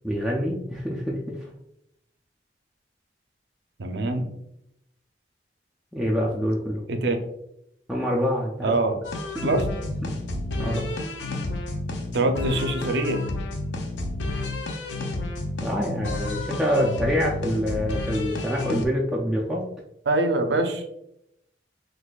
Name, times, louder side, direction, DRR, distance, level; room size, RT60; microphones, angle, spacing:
voice 1, 0.0-1.2 5.9-6.8 7.9-8.7 9.4-9.5 10.1-10.2 10.6-10.9 15.6-19.7, equal, ahead, -4 dB, 0.3 m, -26 dB
voice 2, 3.8-4.3 6.9-7.2 8.6-9.0 9.4-9.6 12.1-13.2 20.1-20.8, right 2 dB, 65° right, 5 dB, 0.5 m, -24 dB
sound 1, 9.0-18.9, left 2 dB, 80° left, 0.5 m, -31 dB
3.9 x 2.5 x 2.3 m, 0.79 s
head